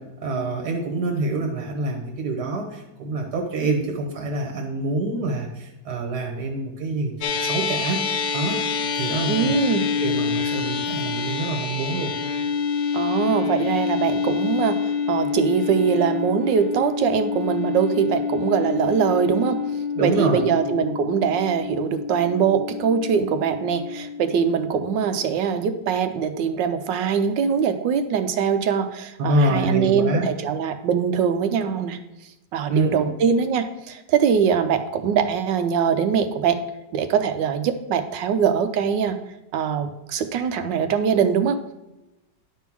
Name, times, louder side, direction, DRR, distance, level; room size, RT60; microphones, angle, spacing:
voice 1, 0.2-8.0 8.3-8.6 8.9-9.6 10.0-12.1 19.9-20.4 29.2-30.3 32.7-33.1, right 2 dB, 60° right, 2 dB, 1.7 m, -26 dB
sound 1, 7.2-25.8, left 6 dB, 80° left, 1.3 m, -27 dB
voice 2, 9.3-9.8 12.9-19.6 20.0-32.0 32.5-36.6 36.9-39.2 39.5-41.6, right 7 dB, 80° right, 9 dB, 1.4 m, -22 dB
11.0 x 3.7 x 6.1 m, 0.97 s
omnidirectional pair, 1.9 m